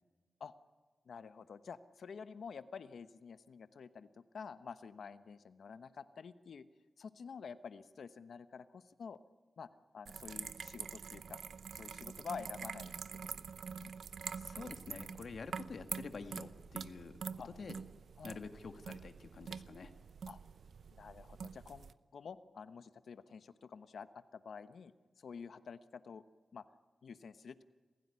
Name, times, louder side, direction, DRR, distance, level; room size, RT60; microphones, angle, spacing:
voice 1, 1.1-6.7 7.0-9.2 9.6-11.4 11.7-13.5 13.8-13.9 17.4-17.5 18.2-18.4 20.3-20.4 20.9-24.9 25.2-26.2 26.5-26.6 27.0-27.6, left 6 dB, 80° left, 12 dB, 1.0 m, -49 dB
sound 1, 10.1-21.9, right 6 dB, 85° right, 0.7 m, -46 dB
voice 2, 14.3-17.8 18.2-19.9, left 4 dB, 65° left, 8 dB, 1.9 m, -48 dB
28.0 x 15.5 x 9.6 m, 1.4 s
wide cardioid pair, 110°, 0 cm